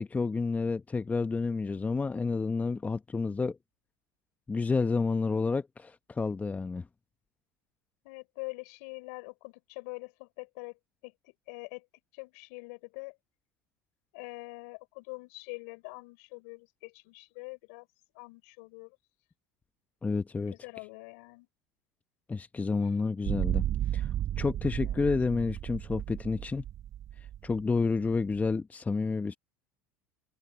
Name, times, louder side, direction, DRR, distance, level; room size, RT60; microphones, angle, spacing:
voice 1, 0.0-3.6 4.5-6.8 20.0-20.5 22.3-23.6 23.9-24.1 24.4-26.6 27.4-29.4, left 4 dB, 15° left, 1.0 m, -30 dB
voice 2, 8.0-10.8 11.0-11.9 12.1-13.2 14.1-17.9 18.1-19.0 20.5-21.5 24.8-25.0, left 31 dB, 70° left, 5.6 m, -44 dB
sound 1, 23.2-28.5, right 11 dB, 40° right, 0.4 m, -33 dB
hypercardioid pair, 85°, 9 cm